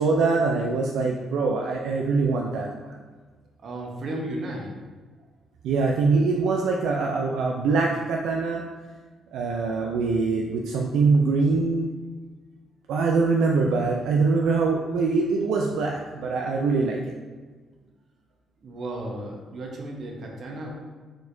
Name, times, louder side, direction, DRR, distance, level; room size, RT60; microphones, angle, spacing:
voice 1, 0.0-3.0 5.6-8.6 9.3-11.9 12.9-17.1, right 4 dB, 85° right, 0 dB, 0.4 m, -23 dB
voice 2, 3.6-4.7 18.6-20.7, right 1 dB, 55° right, 0 dB, 1.0 m, -34 dB
4.7 x 4.2 x 2.6 m, 1.4 s
cardioid pair, 90°, 0 cm